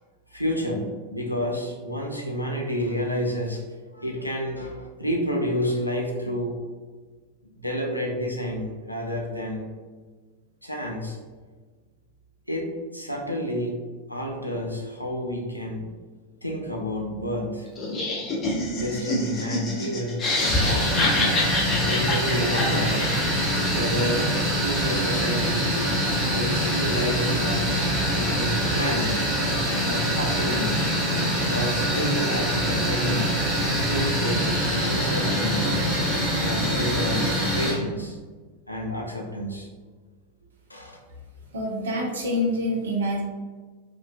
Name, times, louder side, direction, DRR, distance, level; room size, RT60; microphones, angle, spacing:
voice 1, 0.3-3.6 3.9-6.6 7.6-9.7 10.6-11.2 12.5-13.8 14.1-15.8 16.4-17.7 18.7-21.3 21.8-23.0 23.7-25.8 26.3-29.2 29.8-30.9 31.5-33.3 33.8-34.5 34.8-35.8 36.3-38.2 38.7-39.7 40.7-41.0, equal, 90° left, -1 dB, 0.4 m, -30 dB
Laughter, 17.8-23.6, left 2 dB, 25° left, 0.5 m, -27 dB
sound 1, 20.4-37.7, equal, 5° right, 1.0 m, -24 dB
voice 2, 41.5-43.2, left 1 dB, 65° right, -1 dB, 0.5 m, -26 dB
2.4 x 2.2 x 2.3 m, 1.4 s
figure-of-eight pair, 90°, 0 cm